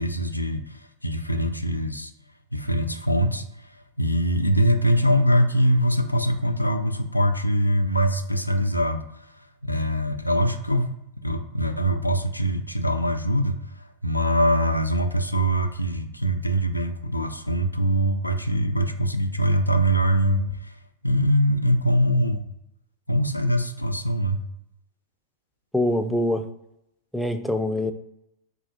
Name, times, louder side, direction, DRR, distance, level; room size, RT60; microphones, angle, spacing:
voice 1, 0.0-2.1 2.5-10.9 11.2-22.4 23.1-24.5, equal, 85° left, 7 dB, 0.3 m, -23 dB
voice 2, 25.7-26.4 27.1-27.9, left 1 dB, ahead, 7 dB, 0.3 m, -24 dB
4.2 x 2.2 x 2.7 m, 0.81 s
figure-of-eight pair, 90°, 0 cm